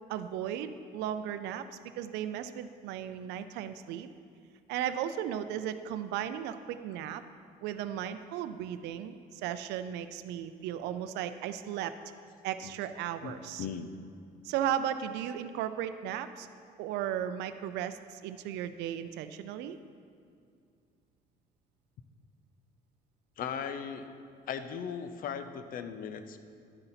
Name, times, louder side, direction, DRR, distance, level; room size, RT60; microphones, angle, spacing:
voice 1, 0.1-1.7 2.0-4.1 4.7-7.2 7.6-11.9 12.4-13.7 14.4-16.5 16.8-19.8, right 10 dB, 85° right, 10 dB, 0.4 m, -35 dB
voice 2, 13.2-13.9 23.4-24.1 24.5-26.4, left 7 dB, 55° left, 10 dB, 0.6 m, -38 dB
11.0 x 4.0 x 5.7 m, 2.3 s
cardioid pair, 110°, 17 cm